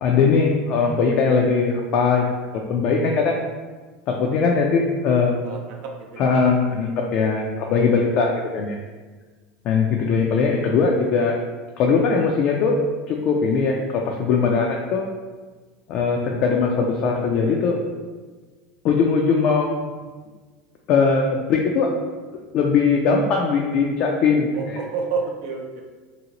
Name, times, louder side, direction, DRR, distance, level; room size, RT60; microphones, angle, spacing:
voice 1, 0.0-2.3 2.7-3.4 4.1-5.6 6.2-8.8 9.6-11.3 11.8-12.8 13.1-15.0 15.9-17.8 18.8-19.9 20.9-21.9 22.5-24.8, left 5 dB, 50° left, 0 dB, 0.3 m, -20 dB
voice 2, 5.4-5.8 6.1-6.5 24.5-25.8, right 5 dB, 70° right, 0 dB, 0.5 m, -29 dB
2.8 x 2.7 x 2.8 m, 1.4 s
supercardioid pair, 135°, 2 cm